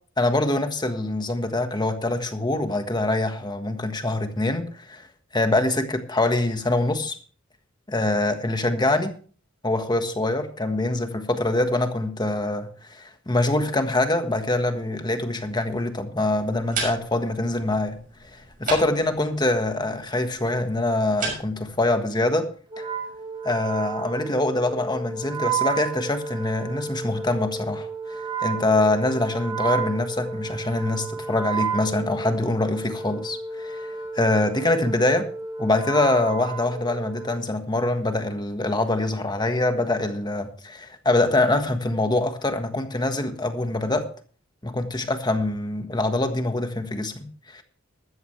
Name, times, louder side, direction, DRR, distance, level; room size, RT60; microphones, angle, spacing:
voice 1, 0.2-5.1 5.3-7.2 7.9-9.1 9.6-18.0 18.3-22.5 22.8-22.9 23.4-33.9 34.1-35.2 35.6-44.1 44.6-47.6, left 2 dB, 20° left, 1.5 m, -24 dB
sound 1, 16.4-21.8, right 4 dB, 45° right, 6.5 m, -35 dB
Wind instrument woodwind instrument, 22.7-37.4, right 6 dB, 25° right, 4.6 m, -32 dB
14.0 x 13.0 x 3.3 m
head